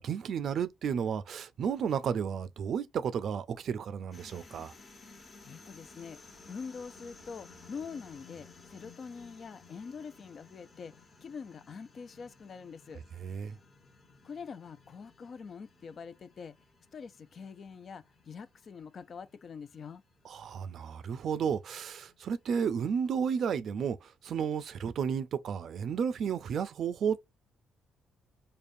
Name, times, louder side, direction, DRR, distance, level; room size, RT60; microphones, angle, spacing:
voice 1, 0.0-4.7 13.2-13.6 20.2-27.2, right 7 dB, 65° right, 0.5 m, -32 dB
sound 1, 4.1-22.6, left 3 dB, 35° left, 1.1 m, -57 dB
voice 2, 5.4-6.2 6.5-10.9 11.2-13.0 14.2-16.6 16.9-20.0, left 5 dB, 50° left, 0.4 m, -44 dB
5.0 x 2.2 x 2.6 m
cardioid pair, 90°, 0 cm